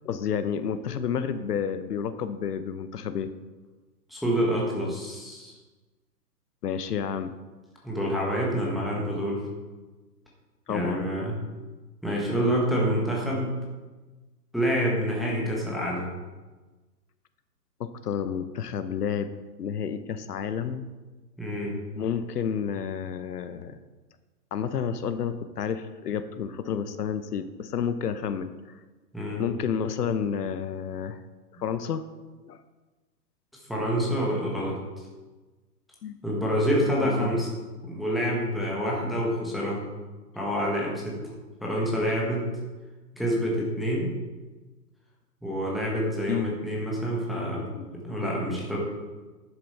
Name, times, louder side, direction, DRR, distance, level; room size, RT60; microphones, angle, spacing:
voice 1, 0.0-3.3 6.6-7.3 10.7-11.1 17.8-19.3 19.6-20.9 22.0-23.8 24.5-28.5 29.4-31.2 31.6-32.0 32.4-32.6 36.0-36.2 37.0-37.3 38.1-38.2 42.1-42.2 43.4-43.6 46.3-46.5 47.6-47.9 48.4-48.6, left 7 dB, 70° left, 11 dB, 0.8 m, -30 dB
voice 2, 4.1-5.5 7.8-9.4 10.7-11.4 12.0-13.5 14.5-16.1 21.4-21.7 29.1-29.4 33.7-34.8 36.2-37.5 37.8-39.8 40.3-41.2 41.6-42.4 43.1-44.1 45.4-47.6 48.0-48.8, equal, ahead, -4 dB, 1.0 m, -27 dB
10.5 x 6.9 x 4.2 m, 1.2 s
hypercardioid pair, 145°, 49 cm